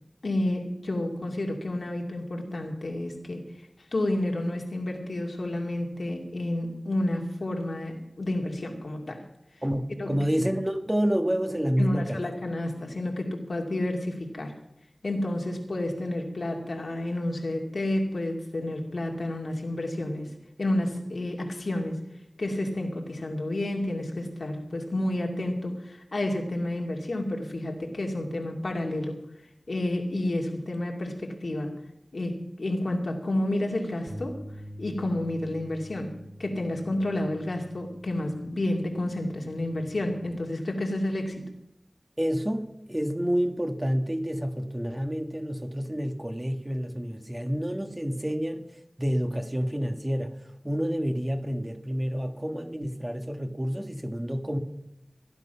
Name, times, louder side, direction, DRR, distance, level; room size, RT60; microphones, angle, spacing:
voice 1, 0.2-3.4 3.9-9.2 10.0-10.2 11.8-14.5 15.0-20.3 20.6-22.0 22.4-29.2 29.7-31.7 32.1-34.4 34.8-41.5, left 1 dB, 90° left, 2.3 m, -30 dB
voice 2, 9.6-12.2 42.2-48.7 49.0-54.6, equal, 20° right, 1.6 m, -29 dB
sound 1, 34.1-40.3, equal, 5° right, 2.3 m, -46 dB
17.0 x 11.0 x 5.7 m
wide cardioid pair, 55°, 0 cm